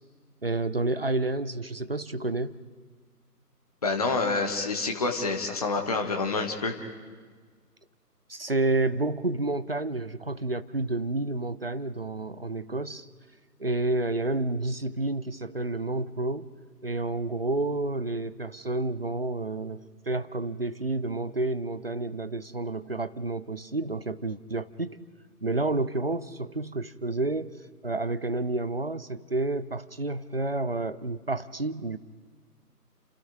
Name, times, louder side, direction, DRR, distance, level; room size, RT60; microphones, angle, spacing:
voice 1, 0.4-2.6 8.3-13.1 13.6-16.5 16.8-25.0 25.4-27.6 27.8-32.0, right 2 dB, 40° right, 14 dB, 0.5 m, -30 dB
voice 2, 3.8-6.7, left 3 dB, 25° left, 3 dB, 1.1 m, -27 dB
29.5 x 26.5 x 3.7 m, 1.5 s
figure-of-eight pair, 150°, 48 cm